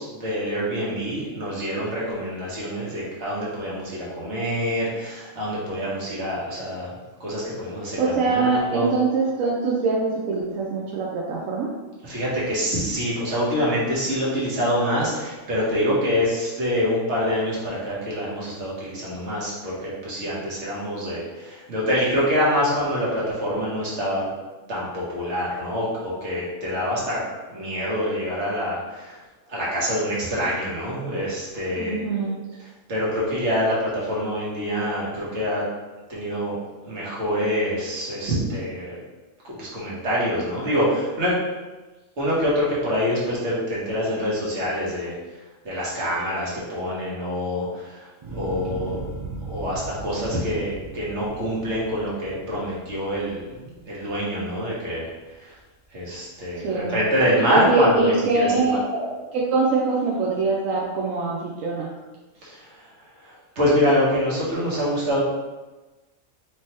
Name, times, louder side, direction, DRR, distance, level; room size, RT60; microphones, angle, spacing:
voice 1, 0.0-6.9 7.2-8.9 12.0-24.2 24.7-27.2 27.5-29.2 29.5-32.0 32.6-35.6 36.1-36.6 36.8-38.9 39.4-41.4 42.2-45.2 45.6-49.0 49.4-55.1 55.4-55.5 55.9-58.5 62.4-62.9 63.2-65.2, equal, 60° right, -6 dB, 1.5 m, -25 dB
voice 2, 8.0-11.7 31.7-32.4 56.6-56.9 57.5-61.9, right 3 dB, 85° right, -4 dB, 1.0 m, -23 dB
sound 1, 48.2-54.5 55.0-55.6, right 3 dB, 45° right, 0.4 m, -37 dB
4.3 x 3.3 x 2.9 m, 1.2 s
omnidirectional pair, 1.3 m